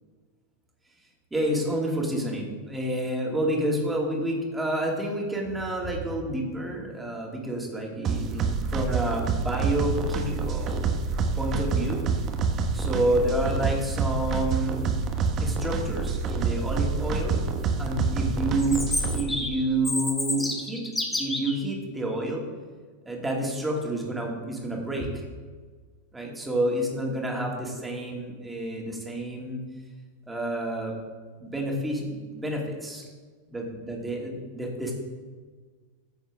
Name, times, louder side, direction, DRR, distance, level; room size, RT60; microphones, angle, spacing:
voice 1, 1.3-10.7 11.4-12.0 12.7-14.8 15.4-22.4 23.1-25.2 26.1-29.6 30.3-31.0 31.4-33.1 33.5-34.9, right 1 dB, 10° right, -1 dB, 2.5 m, -29 dB
sound 1, 8.0-19.2, right 4 dB, 35° right, 1.2 m, -27 dB
Chirp tweet, 18.6-21.6, left 2 dB, 10° left, 1.7 m, -30 dB
14.0 x 7.1 x 3.7 m, 1.5 s
figure-of-eight pair, 90°, 0 cm